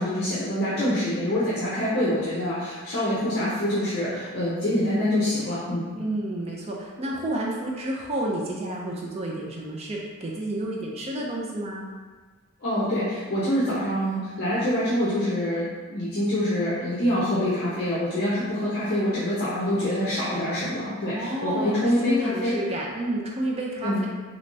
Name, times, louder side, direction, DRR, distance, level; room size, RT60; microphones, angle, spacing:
voice 1, 0.0-5.9 12.6-22.5 23.8-24.0, left 1 dB, 45° left, -10 dB, 0.7 m, -25 dB
voice 2, 6.0-11.9 21.0-24.1, right 1 dB, 30° right, -2 dB, 0.4 m, -30 dB
3.3 x 3.1 x 2.6 m, 1.4 s
head